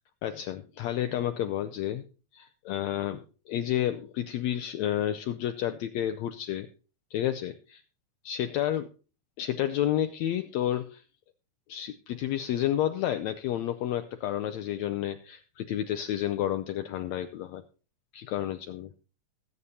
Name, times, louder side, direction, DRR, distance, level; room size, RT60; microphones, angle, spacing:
voice 1, 0.2-2.0 2.3-6.7 7.1-7.8 8.2-8.9 9.4-11.0 11.7-17.6 18.1-18.9, left 11 dB, 75° left, 9 dB, 1.7 m, -30 dB
19.5 x 8.2 x 2.8 m, 0.35 s
omnidirectional pair, 3.6 m